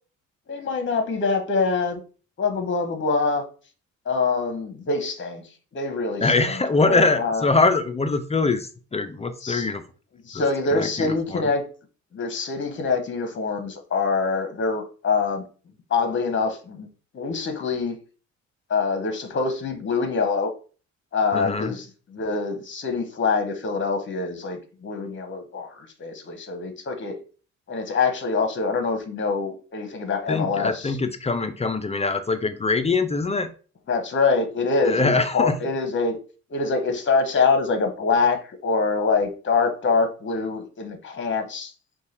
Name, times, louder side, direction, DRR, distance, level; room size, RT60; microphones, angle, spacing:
voice 1, 0.5-2.0 2.4-3.4 4.0-5.4 5.7-7.4 9.4-9.7 10.2-11.6 12.1-15.4 15.9-16.9 17.1-18.0 18.7-20.5 21.1-21.9 22.1-27.2 27.7-31.0 33.9-36.2 36.5-41.7, left 4 dB, 40° left, 7 dB, 1.0 m, -25 dB
voice 2, 6.2-9.8 10.3-10.4 10.7-11.5 21.3-21.7 30.3-33.5 34.8-35.6, left 3 dB, 20° left, 9 dB, 0.5 m, -23 dB
4.6 x 2.3 x 4.2 m, 0.38 s
cardioid pair, 90°, 30 cm